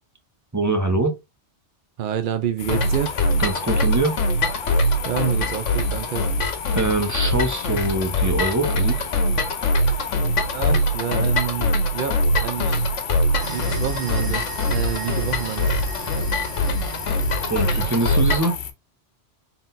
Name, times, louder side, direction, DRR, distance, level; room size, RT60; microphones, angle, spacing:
voice 1, 0.5-1.1 3.4-4.2 6.7-9.1 17.5-18.6, right 2 dB, 20° right, 0.7 m, -23 dB
voice 2, 2.0-3.1 5.0-6.2 10.5-12.9 13.5-15.7, right 9 dB, 60° right, 0.6 m, -28 dB
sound 1, 2.6-18.7, left 8 dB, 55° left, 0.6 m, -35 dB
sound 2, 2.7-18.6, left 1 dB, 90° left, 1.2 m, -23 dB
sound 3, 13.4-18.4, right 5 dB, 85° right, 1.3 m, -36 dB
4.0 x 3.8 x 2.6 m
omnidirectional pair, 1.2 m